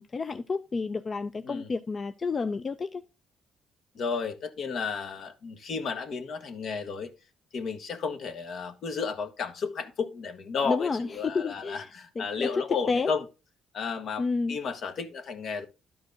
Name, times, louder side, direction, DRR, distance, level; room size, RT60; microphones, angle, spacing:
voice 1, 0.0-3.0 10.6-11.9 12.2-13.1 14.2-14.6, left 4 dB, 35° left, 0.5 m, -30 dB
voice 2, 3.9-7.1 7.5-13.2 13.7-15.6, left 5 dB, 65° left, 1.3 m, -33 dB
12.0 x 4.7 x 3.8 m
cardioid pair, 90°, 0 cm